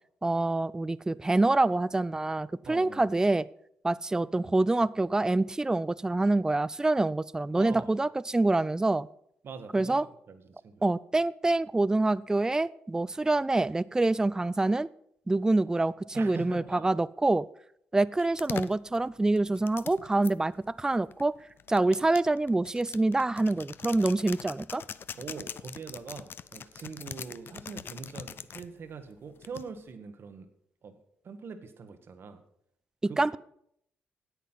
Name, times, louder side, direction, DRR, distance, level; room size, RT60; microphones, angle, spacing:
voice 1, 0.2-3.5 3.8-9.1 9.7-10.0 10.8-14.9 15.3-17.5 17.9-21.3 21.7-24.8 33.0-33.4, right 2 dB, 15° right, 19 dB, 0.4 m, -26 dB
voice 2, 2.7-3.0 7.5-8.1 9.4-10.0 10.3-10.8 16.1-16.9 25.1-30.5 30.8-31.0 31.2-32.4 33.1-33.4, right 5 dB, 55° right, 9 dB, 1.3 m, -43 dB
sound 1, 18.2-20.3 21.1-28.7 29.4-29.9, left 7 dB, 50° left, 0.4 m, -42 dB
9.3 x 8.4 x 5.7 m, 0.70 s
supercardioid pair, 55°, 5 cm